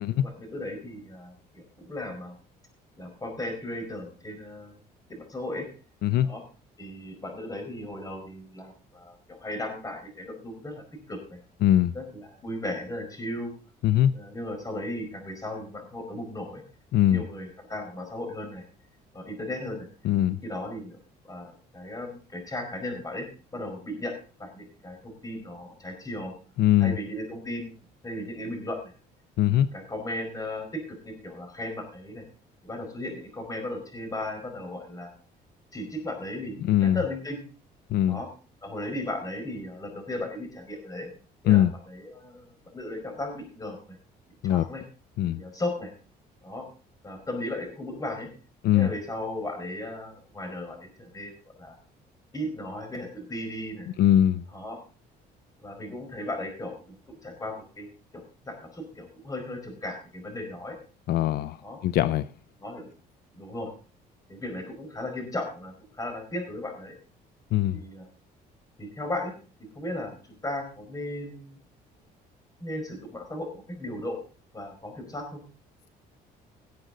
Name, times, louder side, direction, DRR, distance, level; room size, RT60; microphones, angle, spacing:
voice 1, 0.2-2.4 3.0-4.7 5.1-5.7 6.2-6.4 6.8-11.4 11.9-13.5 14.1-16.6 17.0-18.6 19.1-19.9 20.4-21.0 21.2-23.2 23.5-24.1 24.4-26.3 26.8-27.7 28.0-28.9 29.7-32.2 32.6-35.1 35.7-37.4 38.1-38.3 38.6-41.1 41.4-44.0 44.4-44.8 45.3-45.9 46.4-46.7 47.0-48.3 48.7-51.3 51.6-51.8 52.3-53.9 54.5-54.8 55.6-60.7 61.6-61.8 62.6-62.9 63.3-63.7 64.3-66.9 67.7-68.1 68.8-69.3 69.6-71.6 72.6-74.2 74.5-75.4, left 1 dB, 20° left, 4 dB, 4.9 m, -36 dB
voice 2, 11.6-11.9 13.8-14.1 16.9-17.2 20.0-20.4 26.6-26.9 29.4-29.7 36.6-37.0 37.9-38.2 41.5-41.7 44.4-44.7 45.2-45.4 48.6-48.9 54.0-54.4 61.1-61.6 61.8-62.3 67.5-67.8, left 12 dB, 70° left, 16 dB, 0.5 m, -21 dB
18.0 x 7.9 x 3.9 m, 0.37 s
cardioid pair, 110°, 17 cm